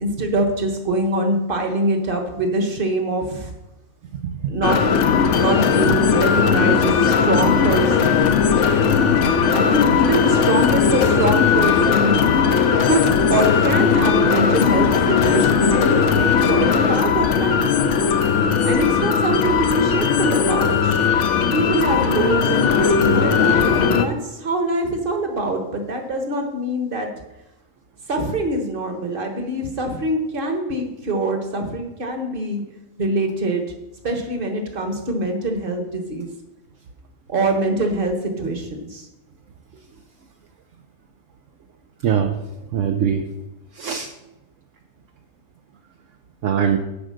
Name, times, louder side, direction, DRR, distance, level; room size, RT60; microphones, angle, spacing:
voice 1, 0.0-3.5 4.5-4.8 5.4-8.2 9.5-12.3 12.8-17.7 18.6-21.0 21.5-27.1 28.1-32.6 33.0-33.6 34.0-36.3 37.3-39.0, right 1 dB, 40° right, 4 dB, 1.5 m, -23 dB
sound 1, 4.6-24.0, left 6 dB, 65° left, 1.0 m, -18 dB
voice 2, 42.0-42.4 42.7-43.3 43.7-44.1 46.4-46.8, right 8 dB, 65° right, 4 dB, 1.0 m, -21 dB
10.0 x 4.9 x 6.4 m, 0.98 s
omnidirectional pair, 1.4 m